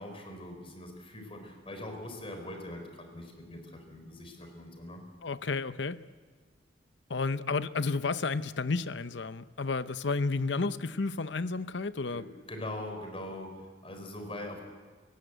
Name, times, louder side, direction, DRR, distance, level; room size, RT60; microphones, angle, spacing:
voice 1, 0.0-5.0 12.1-12.2 12.5-14.6, left 1 dB, 30° left, 4 dB, 4.3 m, -42 dB
voice 2, 5.2-6.0 7.1-12.2, left 4 dB, 70° left, 13 dB, 0.8 m, -31 dB
30.0 x 16.5 x 8.1 m, 1.5 s
head